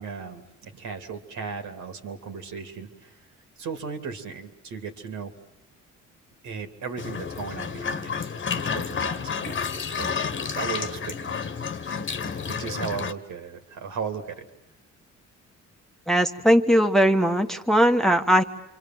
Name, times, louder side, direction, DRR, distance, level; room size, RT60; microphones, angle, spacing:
voice 1, 0.0-3.1 3.6-5.3 6.4-9.6 10.0-11.4 11.8-14.5, right 5 dB, 75° right, 6 dB, 3.1 m, -36 dB
sound 1, 7.0-13.1, left 6 dB, 40° left, 1.4 m, -30 dB
voice 2, 16.1-18.4, equal, ahead, 5 dB, 1.3 m, -19 dB
27.5 x 24.5 x 7.8 m, 0.86 s
cardioid pair, 90°, 30 cm